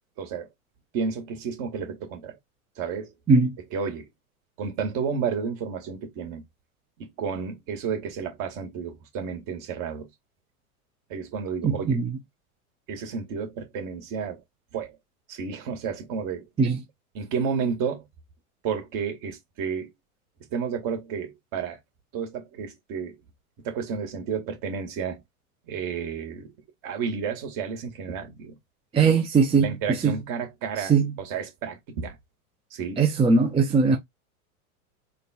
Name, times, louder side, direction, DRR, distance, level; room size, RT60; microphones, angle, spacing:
voice 1, 0.2-0.5 0.9-2.4 2.8-3.1 3.7-4.1 4.6-6.4 7.0-10.1 11.1-12.0 12.9-14.4 14.7-15.0 15.3-16.5 17.1-18.1 18.6-19.9 20.5-21.8 22.1-23.2 23.6-25.2 25.7-26.5 26.8-28.6 29.6-32.2 32.7-33.0, right 6 dB, 45° right, 2.0 m, -31 dB
voice 2, 11.6-12.2 16.6-16.8 28.9-30.2 30.8-31.2 33.0-34.0, right 4 dB, 15° right, 0.7 m, -21 dB
3.9 x 2.4 x 4.3 m
hypercardioid pair, 105°, 44 cm